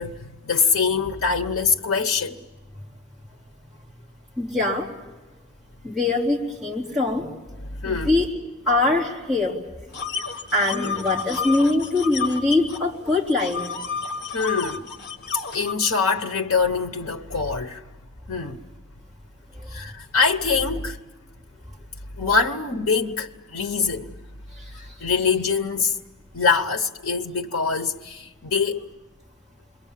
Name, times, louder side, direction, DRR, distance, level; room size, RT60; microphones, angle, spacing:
voice 1, 0.0-2.4 7.8-8.2 10.7-10.9 14.3-14.9 15.5-17.8 18.3-18.6 19.7-21.0 22.2-24.1 24.7-26.0 26.3-28.8, left 5 dB, 75° left, 0.9 m, -24 dB
voice 2, 4.4-4.9 5.8-7.3 7.8-8.3 8.6-9.5 10.5-13.6, left 2 dB, ahead, 3.5 m, -22 dB
sound 1, 9.9-12.8 13.1-15.7, left 5 dB, 50° left, 1.4 m, -30 dB
28.0 x 22.5 x 7.4 m
head